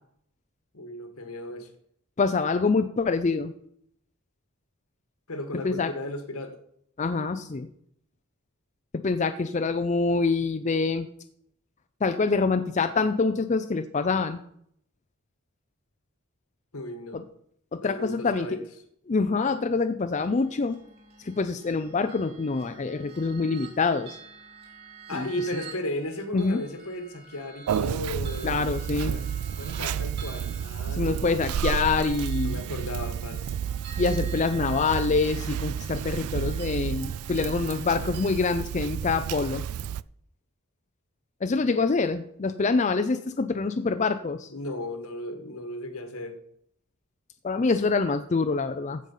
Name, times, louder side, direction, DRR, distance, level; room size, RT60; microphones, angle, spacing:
voice 1, 0.7-1.7 5.3-6.6 16.7-17.2 17.8-18.6 25.1-28.8 29.1-29.2 29.6-31.4 32.4-33.6 44.5-46.4, left 1 dB, 75° left, 7 dB, 1.7 m, -35 dB
voice 2, 2.2-3.5 5.6-5.9 7.0-7.7 8.9-11.1 12.0-14.4 17.1-17.2 17.7-18.5 19.1-20.8 21.2-24.2 25.1-25.3 26.3-26.6 28.4-29.2 31.0-32.6 34.0-39.7 41.4-44.5 47.4-49.0, left 4 dB, 35° left, 9 dB, 0.4 m, -25 dB
sound 1, 20.1-38.5, right 5 dB, 50° right, 3.4 m, -48 dB
Conversation, 27.7-40.0, right 8 dB, 75° right, 0.3 m, -31 dB
15.0 x 5.3 x 5.6 m, 0.68 s
head